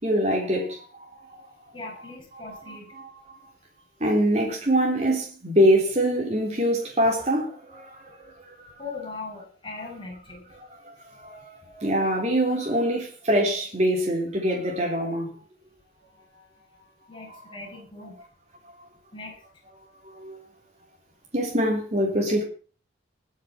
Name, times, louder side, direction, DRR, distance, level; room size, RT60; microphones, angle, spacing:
voice 1, 0.0-1.5 2.5-3.4 4.0-8.7 10.5-15.4 17.3-17.4 18.8-18.9 20.0-20.4 21.3-22.4, equal, 35° right, 3.4 m, -25 dB
voice 2, 1.7-2.9 8.8-10.4 17.1-18.2 19.1-19.4, left 3 dB, 25° left, 7.6 m, -39 dB
21.0 x 7.4 x 5.9 m
head